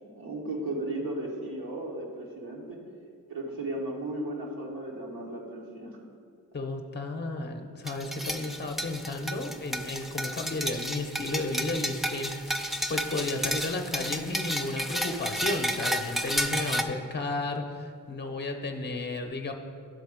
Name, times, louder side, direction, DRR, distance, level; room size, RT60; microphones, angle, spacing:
voice 1, 0.0-2.8 3.3-6.0, right 1 dB, 75° right, -3 dB, 1.5 m, -35 dB
voice 2, 6.5-19.5, left 2 dB, 30° left, 4 dB, 0.7 m, -33 dB
sound 1, 7.9-16.8, equal, ahead, 0.4 m, -32 dB
11.5 x 3.8 x 5.0 m, 2.3 s
cardioid pair, 85°, 37 cm